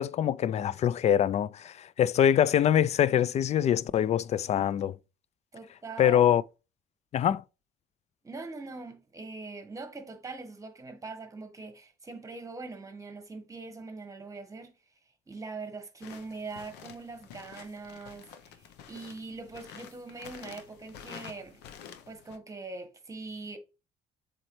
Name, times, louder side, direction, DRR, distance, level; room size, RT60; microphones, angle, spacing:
voice 1, 0.0-4.9 6.0-6.4 7.1-7.4, left 10 dB, 40° left, 0.4 m, -24 dB
voice 2, 5.5-6.2 8.2-14.7 15.3-21.6 22.1-23.6, right 3 dB, 20° right, 1.4 m, -42 dB
sound 1, 16.0-22.4, left 8 dB, 85° left, 0.8 m, -49 dB
7.5 x 4.2 x 3.2 m
cardioid pair, 110°, 17 cm